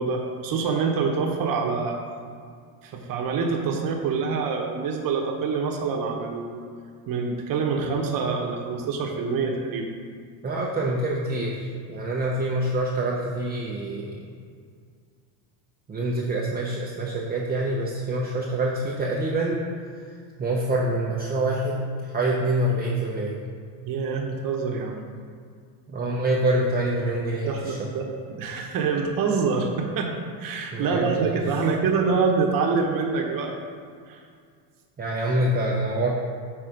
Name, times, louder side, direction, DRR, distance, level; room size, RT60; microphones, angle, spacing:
voice 1, 0.0-2.0 2.8-6.7 7.1-9.9 23.8-25.0 27.4-30.1 30.4-33.5 34.1-34.2, right 5 dB, 45° right, 1 dB, 1.1 m, -26 dB
voice 2, 10.4-14.2 15.9-19.6 20.4-23.4 25.9-27.9 30.7-31.4 35.0-36.1, right 1 dB, 20° right, -3 dB, 0.7 m, -26 dB
6.1 x 4.2 x 5.1 m, 2.1 s
supercardioid pair, 105°, 48 cm